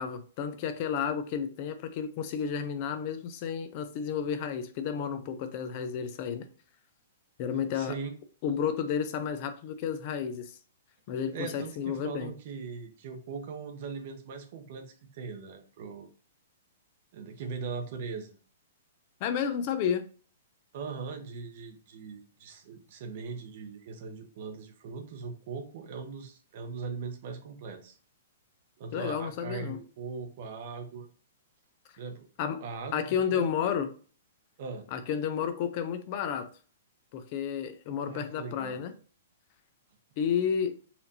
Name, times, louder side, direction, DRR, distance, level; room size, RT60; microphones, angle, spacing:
voice 1, 0.0-6.5 7.4-8.0 8.4-10.6 11.1-12.3 19.2-20.1 28.9-29.8 32.4-32.6 32.9-33.9 34.9-36.5 37.1-38.9 40.2-40.8, left 7 dB, 40° left, 0.5 m, -31 dB
voice 2, 7.7-8.2 11.3-16.1 17.1-18.4 20.7-28.0 28.8-31.1 32.0-32.3 32.6-33.5 34.6-34.8 38.0-38.8, right 5 dB, 50° right, 0.8 m, -40 dB
4.2 x 2.6 x 2.8 m
hypercardioid pair, 145°, 0 cm